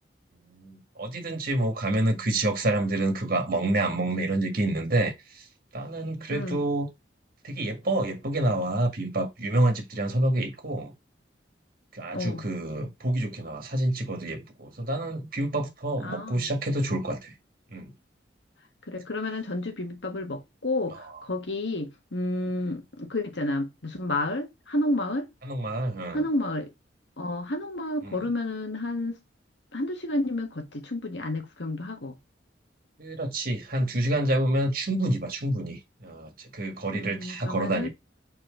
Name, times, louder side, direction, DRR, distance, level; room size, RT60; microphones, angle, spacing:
voice 1, 0.5-5.5 5.7-6.9 7.4-10.9 11.9-17.3 17.7-17.9 20.9-21.0 25.4-26.2 28.0-28.3 33.0-37.9, right 1 dB, 55° right, 1.9 m, -28 dB
voice 2, 6.3-6.7 12.1-12.4 16.0-16.5 18.9-25.3 26.1-26.7 27.2-29.2 29.7-32.2 36.9-37.9, left 1 dB, 75° left, 1.6 m, -30 dB
4.5 x 4.3 x 5.2 m
head